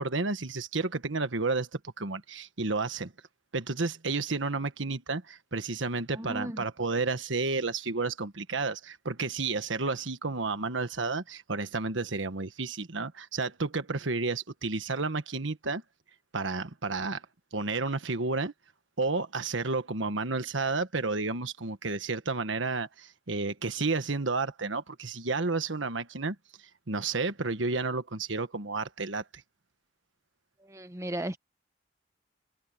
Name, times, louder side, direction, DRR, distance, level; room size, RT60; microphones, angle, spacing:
voice 1, 0.0-3.1 3.5-15.8 16.3-17.2 17.5-18.5 19.0-26.3 26.9-29.2, right 3 dB, 80° right, 1.4 m, -31 dB
voice 2, 6.1-6.6 30.6-31.4, right 1 dB, 15° right, 0.9 m, -36 dB
head